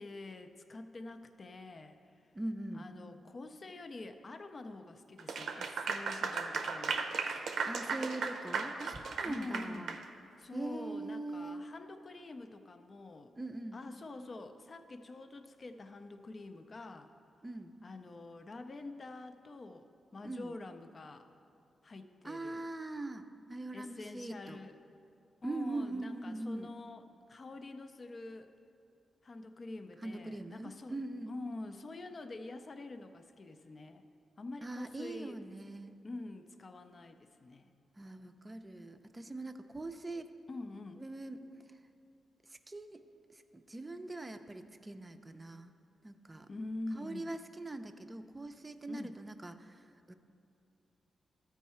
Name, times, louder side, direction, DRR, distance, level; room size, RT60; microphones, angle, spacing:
voice 1, 0.0-2.2 2.7-7.0 9.3-9.9 10.4-13.3 13.7-17.1 17.8-21.3 21.8-22.6 23.7-24.7 25.4-28.5 29.2-30.9 31.3-34.0 34.4-35.4 36.0-37.7 40.5-41.1 46.5-47.4 48.9-49.2, left 2 dB, 45° left, 7 dB, 0.4 m, -46 dB
voice 2, 2.3-2.9 7.6-10.0 10.5-11.6 13.4-13.8 17.4-17.7 20.2-20.6 22.2-24.6 25.4-26.7 30.0-31.3 34.6-35.9 38.0-40.3 41.0-41.4 42.5-43.0 43.3-45.7 46.0-46.5 46.9-50.1, right 2 dB, 20° right, 8 dB, 0.5 m, -42 dB
Clapping / Applause, 5.2-10.0, right 5 dB, 80° right, 0.6 m, -36 dB
13.0 x 4.6 x 4.3 m, 2.6 s
cardioid pair, 75°, 0 cm